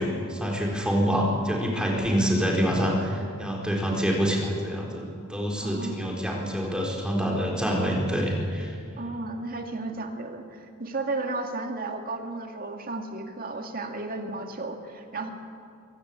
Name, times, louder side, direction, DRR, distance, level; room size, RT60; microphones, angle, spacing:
voice 1, 0.0-8.7, equal, 5° right, -1 dB, 4.0 m, -26 dB
voice 2, 5.6-6.2 9.0-15.3, right 3 dB, 45° right, 4 dB, 2.2 m, -34 dB
24.0 x 17.0 x 8.5 m, 2.4 s
head